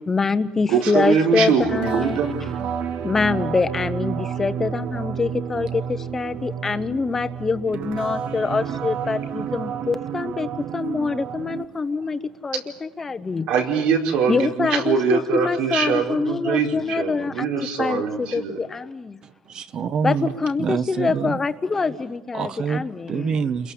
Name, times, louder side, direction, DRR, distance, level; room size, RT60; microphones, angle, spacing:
voice 1, 0.1-2.2 3.0-13.5 14.3-17.5 17.8-19.2 20.0-20.1 20.4-23.3, left 4 dB, 15° left, 1.0 m, -25 dB
voice 2, 0.7-2.4 13.5-18.6, right 6 dB, 80° right, 4.8 m, -22 dB
sound 1, 1.6-11.6, right 8 dB, 55° right, 1.4 m, -30 dB
voice 3, 19.2-21.4 22.3-23.7, right 6 dB, 35° right, 1.2 m, -27 dB
29.5 x 22.0 x 8.6 m
cardioid pair, 180°, 2 cm